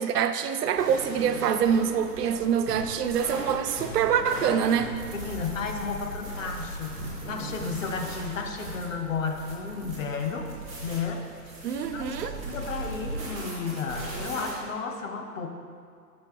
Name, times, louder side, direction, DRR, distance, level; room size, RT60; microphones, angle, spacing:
voice 1, 0.0-4.9 11.6-12.3, right 8 dB, 70° right, 9 dB, 0.5 m, -25 dB
sound 1, 0.8-14.5, right 2 dB, 5° right, 0.4 m, -38 dB
voice 2, 5.1-10.5 10.8-11.2 11.9-15.5, left 5 dB, 50° left, 3 dB, 0.7 m, -33 dB
6.3 x 5.2 x 3.4 m, 2.2 s
hypercardioid pair, 145°, 50 cm